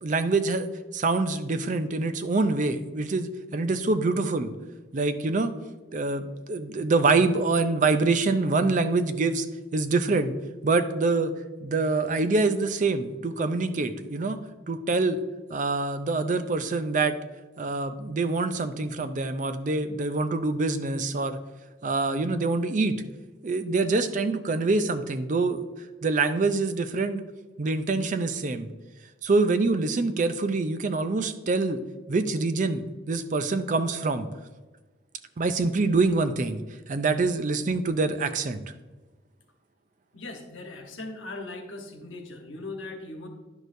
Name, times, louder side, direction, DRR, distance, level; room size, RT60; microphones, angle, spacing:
voice 1, 0.0-4.5 4.9-5.5 5.9-9.5 9.7-10.3 10.6-11.3 11.6-14.4 14.7-15.2 15.5-17.2 17.6-21.4 21.8-23.0 23.4-25.6 26.0-27.2 27.6-28.7 29.2-31.8 32.1-32.8 33.1-34.3 35.4-36.6 36.9-38.6, right 3 dB, 40° right, 9 dB, 0.4 m, -25 dB
voice 2, 40.1-43.3, left 2 dB, 85° left, 3 dB, 1.2 m, -39 dB
10.5 x 6.3 x 2.6 m, 1.2 s
head